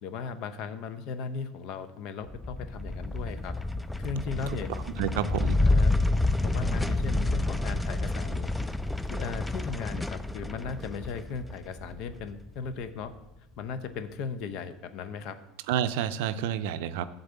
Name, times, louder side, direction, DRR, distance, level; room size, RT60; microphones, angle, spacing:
voice 1, 0.0-3.5 4.0-4.7 5.6-6.0 6.4-8.5 9.1-13.1 13.6-15.4, left 5 dB, 60° left, 11 dB, 0.7 m, -37 dB
sound 1, 2.3-12.9, left 2 dB, 5° left, 0.3 m, -29 dB
voice 2, 5.0-5.6 15.7-17.0, right 10 dB, 75° right, 12 dB, 0.4 m, -29 dB
7.9 x 4.1 x 6.8 m, 0.93 s
hypercardioid pair, 90°, 0 cm